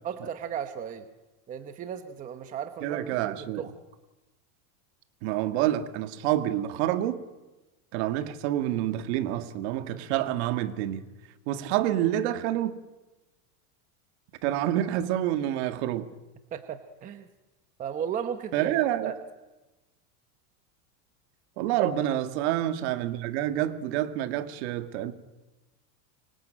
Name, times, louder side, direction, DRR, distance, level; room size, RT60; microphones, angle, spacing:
voice 1, 0.0-1.1 1.5-3.7 16.5-17.3 17.8-18.7 19.0-19.2 21.8-21.9, right 8 dB, 20° right, 1.0 m, -35 dB
voice 2, 2.8-3.7 5.2-7.2 7.9-11.0 11.5-12.7 14.4-16.1 18.5-19.1 21.6-25.1, right 12 dB, 50° right, 1.9 m, -28 dB
25.0 x 24.0 x 9.0 m
supercardioid pair, 170°, 43 cm